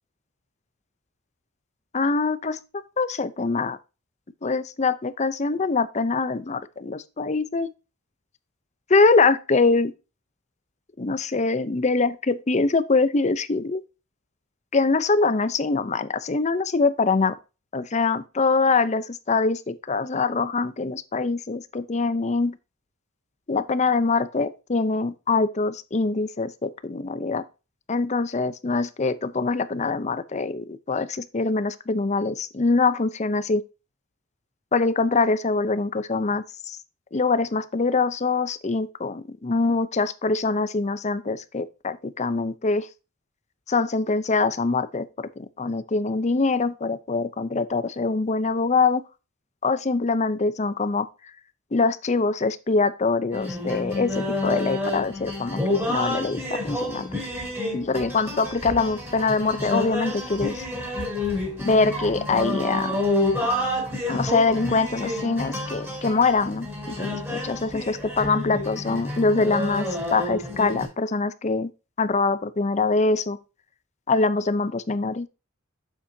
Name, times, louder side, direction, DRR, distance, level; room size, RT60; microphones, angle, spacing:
voice 1, 1.9-2.6 3.0-3.8 4.4-7.7 8.9-9.9 11.0-13.8 14.7-17.3 17.7-22.6 23.5-27.4 27.9-33.6 34.7-36.8 37.1-42.9 43.7-49.0 49.6-51.1 51.7-57.1 57.7-60.6 61.6-63.0 64.1-71.7 72.0-73.4 74.1-75.3, left 3 dB, 35° left, 0.6 m, -24 dB
sound 1, 53.3-70.8, left 2 dB, 10° right, 4.2 m, -29 dB
8.6 x 7.3 x 2.7 m
head